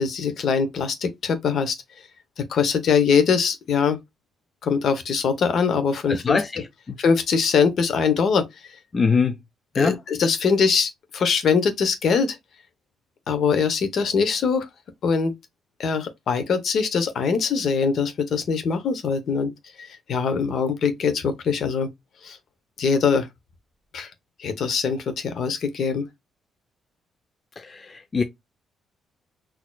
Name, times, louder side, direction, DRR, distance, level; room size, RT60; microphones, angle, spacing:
voice 1, 0.0-1.8 2.5-4.0 4.6-6.4 7.0-8.5 9.7-12.4 13.3-14.7 15.0-15.3 15.8-19.5 19.8-21.9 22.2-22.4 22.8-23.3 23.9-24.1 24.4-26.0, left 5 dB, 60° left, 0.9 m, -22 dB
voice 2, 6.1-6.6 8.9-9.4 9.8-10.0 27.6-28.2, left 5 dB, 35° left, 0.5 m, -23 dB
4.2 x 2.9 x 2.3 m
cardioid pair, 90°, 0 cm